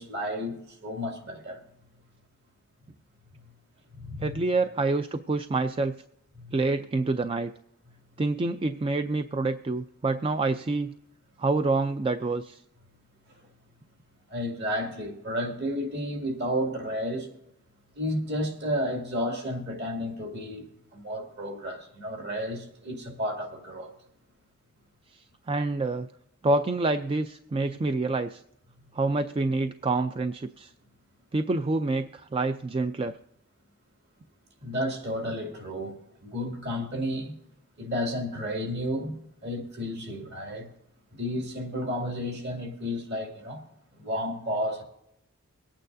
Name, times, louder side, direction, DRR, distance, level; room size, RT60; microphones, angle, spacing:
voice 1, 0.0-1.6 4.0-4.5 6.4-6.5 14.3-17.3 17.9-20.6 20.9-23.9 34.6-35.9 36.2-37.3 37.8-39.2 39.4-40.7 41.1-43.6 44.0-44.8, equal, 50° right, 2 dB, 2.4 m, -32 dB
voice 2, 4.2-5.9 6.5-7.5 8.2-10.9 11.4-12.6 25.1-26.1 26.4-28.4 28.9-30.7 31.3-33.2, right 3 dB, 25° right, 10 dB, 0.3 m, -27 dB
24.0 x 8.9 x 2.6 m, 0.78 s
head